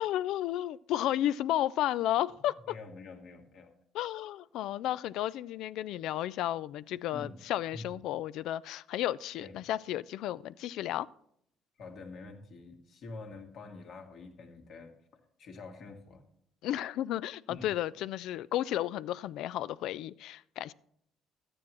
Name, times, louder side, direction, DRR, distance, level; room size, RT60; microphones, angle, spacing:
voice 1, 0.0-2.8 3.9-11.1 16.6-20.7, left 13 dB, 75° left, 19 dB, 0.3 m, -33 dB
voice 2, 2.7-3.7 7.1-7.4 7.7-8.0 9.4-9.6 11.8-16.2 17.5-17.7, left 3 dB, 50° left, 4 dB, 1.7 m, -47 dB
12.5 x 9.6 x 3.0 m, 0.71 s
cardioid pair, 150°, 0 cm